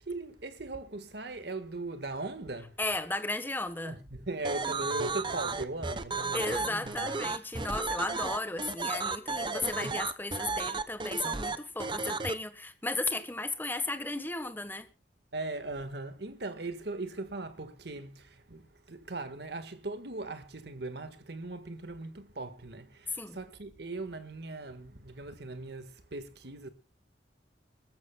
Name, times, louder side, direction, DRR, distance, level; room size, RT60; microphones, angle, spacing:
voice 1, 0.0-2.8 3.8-7.1 15.3-26.7, right 2 dB, 65° right, 1.6 m, -39 dB
voice 2, 2.8-4.0 6.3-14.9 23.1-23.4, left 2 dB, 10° left, 1.2 m, -35 dB
sound 1, 4.4-12.3, right 4 dB, 25° right, 0.9 m, -33 dB
25.5 x 14.0 x 2.3 m
head